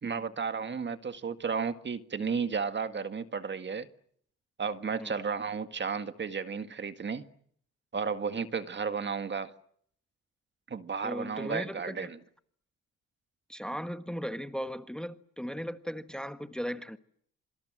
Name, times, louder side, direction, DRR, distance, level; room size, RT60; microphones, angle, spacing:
voice 1, 0.0-3.9 4.6-7.2 7.9-9.5 10.7-12.2, right 5 dB, 35° right, 1.9 m, -33 dB
voice 2, 11.0-12.1 13.5-17.0, equal, 5° left, 1.4 m, -37 dB
27.0 x 25.5 x 7.7 m
cardioid pair, 90°, 30 cm